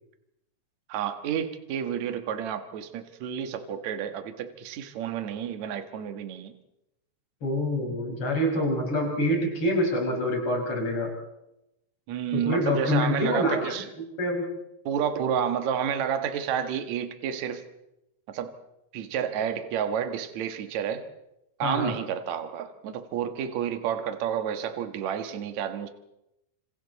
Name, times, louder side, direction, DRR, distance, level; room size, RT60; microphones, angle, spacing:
voice 1, 0.9-6.5 12.1-13.9 14.9-17.6 18.3-18.5 18.9-21.1 21.6-25.9, right 8 dB, 60° right, 7 dB, 1.9 m, -30 dB
voice 2, 7.4-11.1 12.3-13.8 14.2-14.4 21.6-21.9, left 1 dB, 30° left, 1 dB, 5.8 m, -26 dB
28.0 x 27.0 x 4.2 m, 0.88 s
omnidirectional pair, 5.3 m